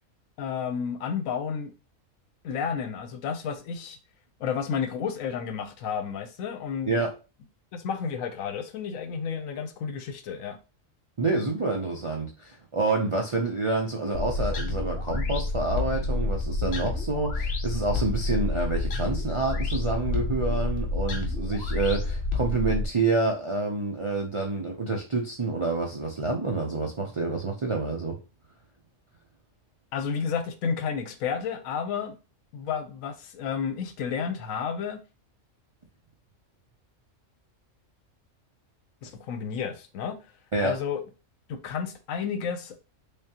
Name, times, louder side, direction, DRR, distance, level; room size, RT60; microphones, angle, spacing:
voice 1, 0.4-1.7 2.4-4.0 4.4-7.0 7.7-10.6 29.9-32.2 32.5-35.0 39.0-40.2 40.6-41.0 41.5-42.8, left 6 dB, 85° left, 1.1 m, -31 dB
voice 2, 11.2-28.2 40.5-40.7, right 3 dB, 55° right, 0.3 m, -28 dB
sound 1, 14.1-22.9, left 2 dB, 55° left, 1.0 m, -29 dB
3.6 x 3.4 x 2.8 m
omnidirectional pair, 1.4 m